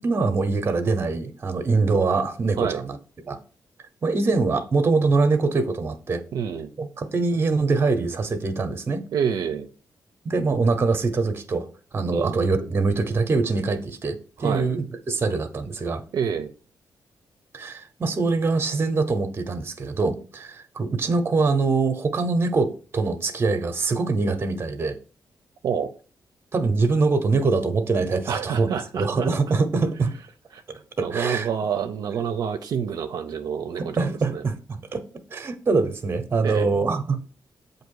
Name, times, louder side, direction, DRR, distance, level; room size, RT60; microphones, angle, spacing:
voice 1, 0.0-3.0 3.3-3.4 4.0-6.2 6.8-9.0 10.2-11.7 11.9-16.0 17.5-25.0 26.5-28.7 28.9-30.1 30.7-31.5 33.8-35.0 35.3-37.2, right 3 dB, 35° right, 9 dB, 0.7 m, -23 dB
voice 2, 6.3-6.7 9.1-9.7 12.1-12.4 14.4-14.7 16.1-16.5 25.6-25.9 28.3-29.3 30.5-30.6 31.0-34.4 36.4-36.7, right 7 dB, 70° right, 7 dB, 0.5 m, -28 dB
7.8 x 2.7 x 4.7 m, 0.40 s
wide cardioid pair, 125°, 7 cm